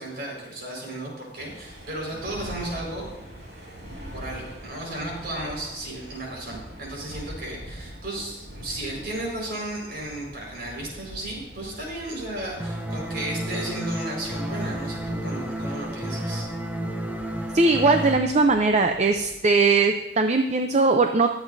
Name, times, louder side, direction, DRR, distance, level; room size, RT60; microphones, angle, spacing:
voice 1, 0.0-3.1 4.1-16.5, right 1 dB, 60° right, -2 dB, 4.9 m, -34 dB
sound 1, 1.4-19.3, equal, 75° right, 4.3 m, -44 dB
sound 2, 12.6-18.2, right 1 dB, 10° right, 0.8 m, -31 dB
voice 2, 17.5-21.3, right 3 dB, 40° right, 6 dB, 0.6 m, -20 dB
22.0 x 8.1 x 2.7 m, 1.0 s
head